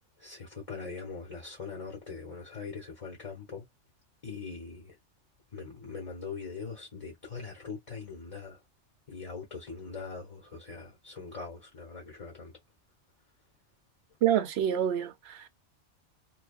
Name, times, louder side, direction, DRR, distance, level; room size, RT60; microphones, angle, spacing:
voice 1, 0.2-3.7 4.2-5.0 5.5-8.6 9.1-12.5, left 4 dB, 30° left, 1.0 m, -42 dB
voice 2, 14.2-15.5, right 10 dB, 65° right, 0.8 m, -27 dB
2.3 x 2.2 x 2.4 m
omnidirectional pair, 1.3 m